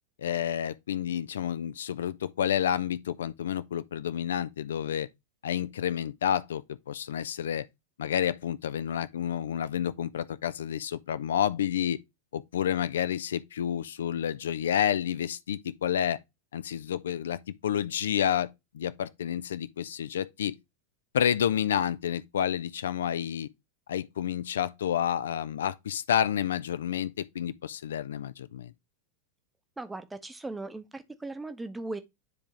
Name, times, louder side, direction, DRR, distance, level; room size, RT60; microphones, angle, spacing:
voice 1, 0.2-5.1 5.4-7.7 8.0-12.0 12.3-16.2 16.5-18.5 18.7-20.5 21.1-23.5 23.9-28.7, left 9 dB, 65° left, 0.3 m, -29 dB
voice 2, 29.8-32.0, right 2 dB, 10° right, 0.7 m, -38 dB
9.7 x 3.6 x 3.0 m
figure-of-eight pair, 90°, 0 cm